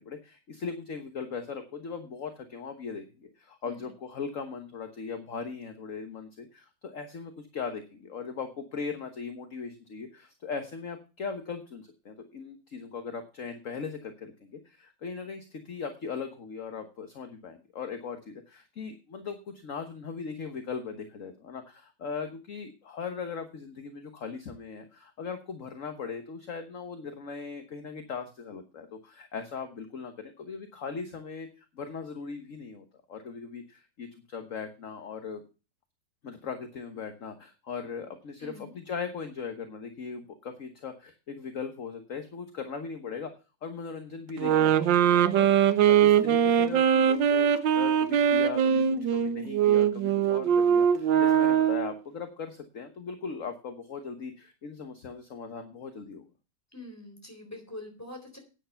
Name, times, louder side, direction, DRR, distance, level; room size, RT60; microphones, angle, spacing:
voice 1, 0.0-35.4 36.2-43.3 43.6-48.8 49.1-56.2, left 5 dB, 50° left, 7 dB, 1.5 m, -39 dB
voice 2, 38.4-38.8 56.7-58.4, left 1 dB, 10° left, 3 dB, 3.9 m, -44 dB
sound 1, 44.4-51.9, right 8 dB, 80° right, 1.6 m, -22 dB
10.0 x 9.4 x 5.7 m, 0.32 s
omnidirectional pair, 2.0 m